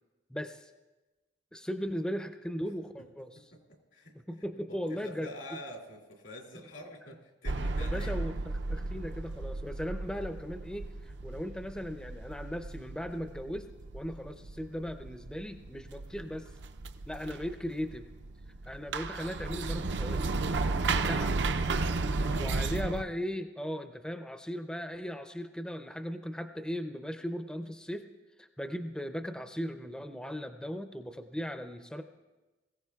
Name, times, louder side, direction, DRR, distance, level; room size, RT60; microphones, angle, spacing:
voice 1, 0.3-0.7 1.5-3.4 4.3-5.3 7.8-13.7 13.9-16.5 17.1-18.1 18.7-20.4 21.0-21.4 22.4-28.1 28.4-32.0, equal, 5° left, 7 dB, 0.4 m, -37 dB
voice 2, 3.3-4.1 4.7-8.4 8.8-8.9 21.0-22.7, left 1 dB, 90° left, -1 dB, 2.5 m, -47 dB
sound 1, 7.5-23.0, right 3 dB, 65° right, 0.5 m, -34 dB
21.5 x 15.0 x 2.3 m, 1.1 s
head